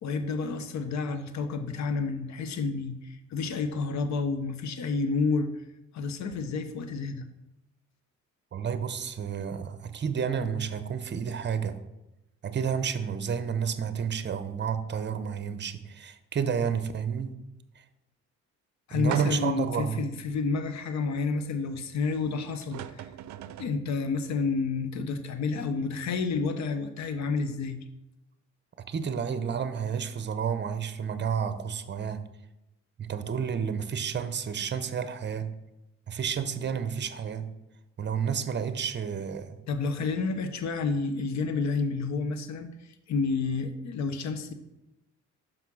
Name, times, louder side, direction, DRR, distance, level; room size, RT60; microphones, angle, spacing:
voice 1, 0.0-5.5 5.9-7.3 18.9-23.1 23.6-27.8 39.7-42.7 43.1-44.5, left 4 dB, 65° left, 10 dB, 0.9 m, -30 dB
voice 2, 8.5-11.8 12.4-17.4 17.8-17.9 18.9-20.0 28.9-32.2 33.0-35.5 36.1-37.5 38.0-39.6, right 7 dB, 35° right, 11 dB, 0.8 m, -31 dB
sound 1, 19.1-19.7 20.3-20.4 22.2-22.3 22.6-23.8, right 11 dB, 65° right, 0.5 m, -38 dB
5.9 x 5.3 x 6.2 m, 0.94 s
cardioid pair, 90°, 30 cm